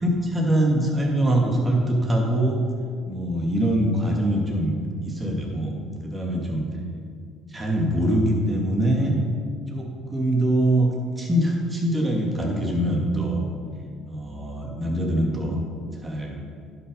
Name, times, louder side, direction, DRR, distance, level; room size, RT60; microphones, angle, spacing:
voice 1, 0.0-2.6 3.1-4.7 5.0-6.6 7.5-9.1 9.7-13.4 14.1-15.6 16.0-16.4, right 1 dB, 20° right, 0 dB, 2.4 m, -23 dB
10.5 x 6.4 x 5.4 m, 2.1 s
hypercardioid pair, 65°, 0 cm